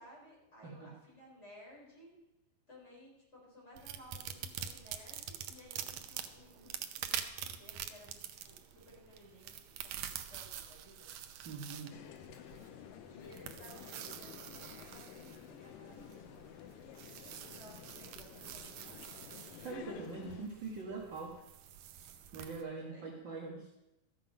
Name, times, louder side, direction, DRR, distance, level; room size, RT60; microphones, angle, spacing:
voice 1, 0.0-2.1 2.7-11.1 12.8-16.4 17.3-19.1 22.7-23.2, equal, 20° left, -5 dB, 4.3 m, -58 dB
sound 1, 3.7-22.6, right 10 dB, 85° right, 1.5 m, -46 dB
voice 2, 11.4-12.0 19.6-21.4 22.3-23.8, right 4 dB, 55° right, -2 dB, 1.4 m, -43 dB
sound 2, 11.9-20.5, left 9 dB, 85° left, 2.3 m, -52 dB
13.5 x 7.6 x 5.2 m, 0.95 s
omnidirectional pair, 3.9 m